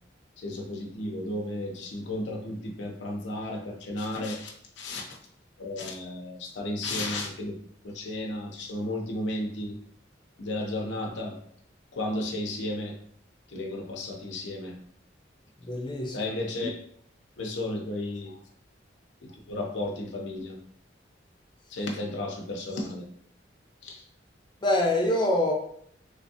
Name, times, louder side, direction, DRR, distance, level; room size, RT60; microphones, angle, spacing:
voice 1, 0.4-5.2 5.6-7.6 7.8-9.8 10.4-11.4 11.9-13.0 13.5-14.8 16.1-16.8 17.4-18.3 19.2-20.6 21.7-23.1 23.8-24.0, left 1 dB, 70° left, 0 dB, 0.6 m, -33 dB
voice 2, 15.6-16.3 18.3-18.4 24.6-25.5, left 1 dB, 25° left, 0 dB, 0.7 m, -25 dB
3.4 x 3.1 x 2.7 m, 0.64 s
head